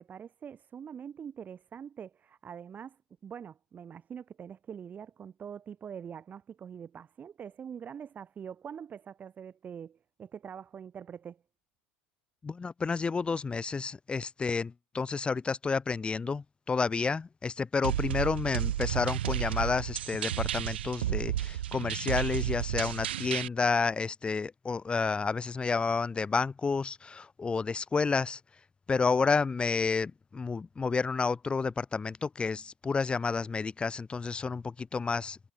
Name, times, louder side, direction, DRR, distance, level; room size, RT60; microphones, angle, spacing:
voice 1, 0.0-11.4, right 7 dB, 25° right, 7.6 m, -44 dB
voice 2, 12.4-28.4 28.9-35.4, left 4 dB, 15° left, 1.5 m, -30 dB
sound 1, 17.8-23.5, right 12 dB, 65° right, 2.2 m, -32 dB
figure-of-eight pair, 75°, 6 cm